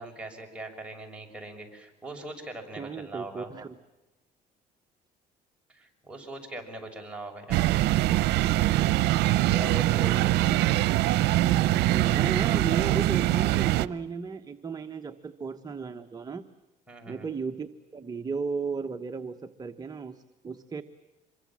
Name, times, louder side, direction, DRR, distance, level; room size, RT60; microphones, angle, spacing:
voice 1, 0.0-3.5 5.7-7.7 9.2-10.4 16.9-17.3, right 2 dB, 5° right, 0 dB, 6.6 m, -41 dB
voice 2, 2.8-3.8 10.0-10.4 11.9-16.4 17.1-20.8, right 5 dB, 25° right, 6 dB, 1.2 m, -35 dB
sound 1, 7.5-13.9, right 15 dB, 80° right, 0.8 m, -23 dB
26.5 x 23.5 x 7.5 m, 1.1 s
cardioid pair, 110°, 17 cm